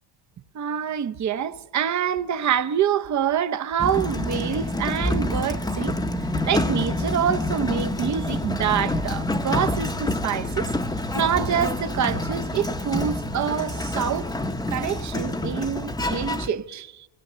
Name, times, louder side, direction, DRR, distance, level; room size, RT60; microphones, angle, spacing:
voice 1, 0.5-5.9 6.4-10.7 11.1-14.3 14.7-17.1, right 8 dB, 35° right, 0.8 m, -26 dB
Sliding door, 3.8-16.5, left 1 dB, 10° left, 0.9 m, -27 dB
23.0 x 17.0 x 6.8 m
cardioid pair, 115°, 47 cm